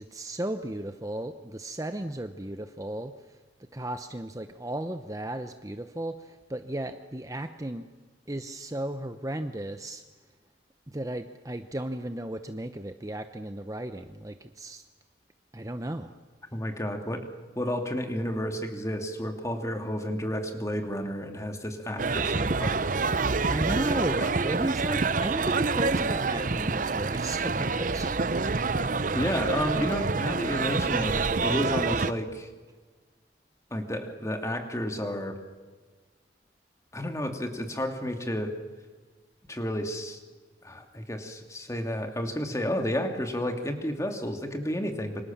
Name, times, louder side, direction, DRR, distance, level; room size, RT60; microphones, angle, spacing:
voice 1, 0.0-3.1 3.7-7.8 8.3-10.0 10.9-14.8 15.5-16.1 23.4-28.2 28.5-28.8, right 1 dB, 20° right, 8 dB, 0.9 m, -35 dB
voice 2, 16.5-17.2 17.6-22.8 24.2-24.3 29.1-32.5 33.7-35.4 36.9-38.5 39.5-40.2 40.6-45.2, equal, 15° left, 5 dB, 2.7 m, -31 dB
sound 1, 22.0-32.1, right 4 dB, 45° right, 0.8 m, -27 dB
28.0 x 26.0 x 7.4 m, 1.4 s
head